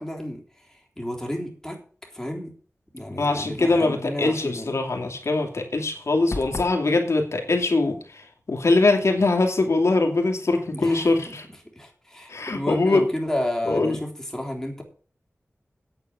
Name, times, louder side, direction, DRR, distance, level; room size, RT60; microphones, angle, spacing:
voice 1, 0.0-2.5 2.9-4.8 10.7-11.4 11.7-14.8, left 1 dB, 10° left, 0 dB, 3.5 m, -32 dB
voice 2, 3.1-11.4 12.3-13.0 13.7-14.0, left 3 dB, 75° left, 2 dB, 2.7 m, -22 dB
sound 1, 6.3-6.8, left 2 dB, 55° left, 2.9 m, -31 dB
9.0 x 8.4 x 7.5 m, 0.42 s
wide cardioid pair, 75°, 5 cm